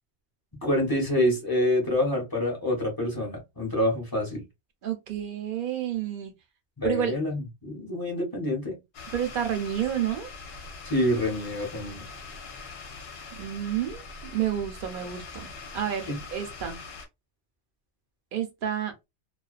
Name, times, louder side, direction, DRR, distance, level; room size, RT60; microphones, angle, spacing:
voice 1, 0.6-4.4 6.8-8.8 10.8-12.0 16.1-16.2, left 1 dB, 20° left, 0.8 m, -27 dB
voice 2, 4.8-6.3 6.8-7.1 9.1-10.3 13.4-14.0 14.3-16.8 18.3-18.9, right 10 dB, 55° right, 0.7 m, -30 dB
sound 1, 8.9-17.1, left 4 dB, 65° left, 0.8 m, -42 dB
2.4 x 2.2 x 2.3 m
omnidirectional pair, 1.2 m